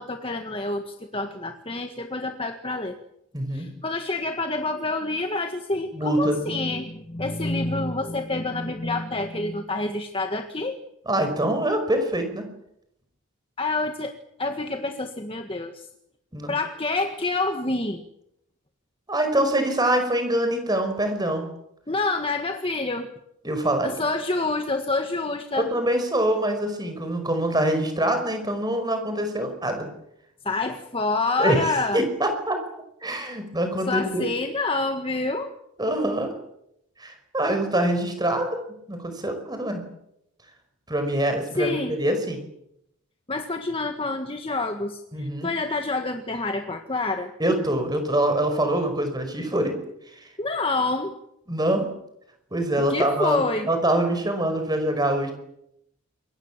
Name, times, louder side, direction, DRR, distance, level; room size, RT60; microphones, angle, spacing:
voice 1, 0.0-3.0 3.5-10.8 13.6-14.1 14.4-15.9 16.5-18.0 21.9-23.1 23.8-25.7 30.5-32.0 33.9-35.5 41.6-41.9 43.3-47.3 50.4-51.2 52.9-53.7, left 2 dB, 25° left, 5 dB, 1.7 m, -27 dB
voice 2, 3.3-3.7 5.9-6.4 11.1-12.5 16.3-16.5 19.1-21.5 23.4-23.9 25.6-29.9 31.4-32.6 33.0-34.2 35.8-36.3 37.0-38.5 38.9-39.8 40.9-42.4 45.1-45.5 47.4-49.7 50.1-50.3 51.5-51.9 52.5-55.3, right 1 dB, 20° right, 7 dB, 5.2 m, -24 dB
28.0 x 22.5 x 7.4 m, 0.79 s
head